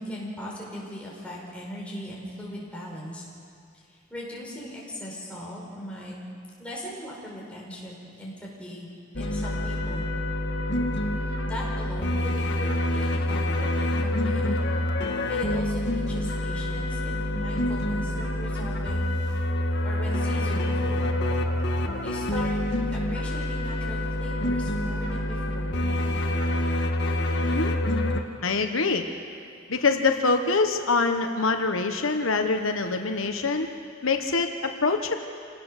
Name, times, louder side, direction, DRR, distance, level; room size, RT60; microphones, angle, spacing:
voice 1, 0.0-3.3 3.7-6.2 6.6-10.1 11.4-14.7 15.3-19.1 19.8-21.2 22.0-22.6 22.9-26.2, equal, 5° left, -4 dB, 5.2 m, -39 dB
sound 1, 9.1-28.2, left 1 dB, 55° left, 1.6 m, -27 dB
voice 2, 27.4-27.7 28.4-29.0 29.7-33.7 34.0-35.1, left 4 dB, 80° left, 6 dB, 1.2 m, -24 dB
27.5 x 18.5 x 6.6 m, 2.4 s
head